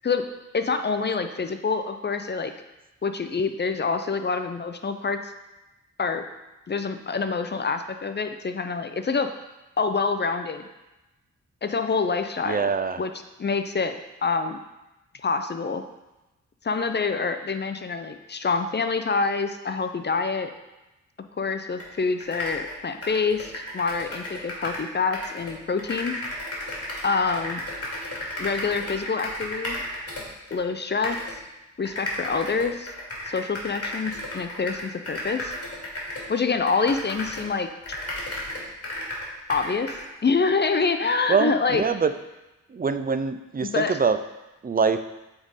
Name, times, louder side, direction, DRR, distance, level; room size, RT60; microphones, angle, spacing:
voice 1, 0.5-2.5 3.0-5.3 6.0-6.2 6.7-9.3 9.8-10.7 11.6-12.7 13.0-13.1 13.4-14.6 15.2-15.8 16.6-20.5 21.4-26.2 27.0-27.6 28.4-29.8 30.5-31.4 31.8-32.9 33.3-35.5 36.3-38.0 39.5-41.8 43.6-44.0, left 4 dB, 35° left, 8 dB, 0.5 m, -26 dB
voice 2, 12.4-13.0 41.3-42.1 42.7-44.2 44.6-45.0, right 5 dB, 30° right, 10 dB, 0.4 m, -24 dB
sound 1, 21.8-21.9 22.2-24.9 25.1-30.6 31.0-31.4 31.8-37.5 37.8-40.1, left 1 dB, 50° left, 2.2 m, -34 dB
7.7 x 3.7 x 4.1 m, 1.0 s
cardioid pair, 60°, 32 cm